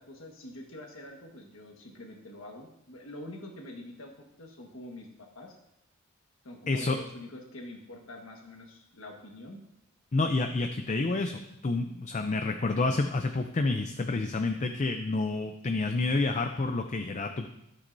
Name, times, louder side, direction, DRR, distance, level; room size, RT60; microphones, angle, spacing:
voice 1, 0.0-4.1 4.4-5.6 6.4-9.6, left 1 dB, 65° left, 1 dB, 1.5 m, -45 dB
voice 2, 6.7-7.0 10.1-17.5, left 3 dB, 35° left, 6 dB, 0.5 m, -29 dB
12.5 x 8.4 x 2.7 m, 0.83 s
head